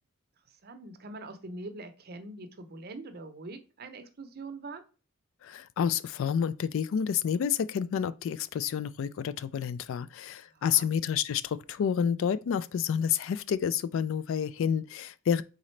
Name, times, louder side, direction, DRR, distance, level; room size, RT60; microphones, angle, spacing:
voice 1, 0.6-4.8 10.5-10.9, right 2 dB, 50° right, 0.6 m, -43 dB
voice 2, 5.4-15.4, left 8 dB, 65° left, 0.3 m, -29 dB
4.1 x 3.7 x 3.1 m
head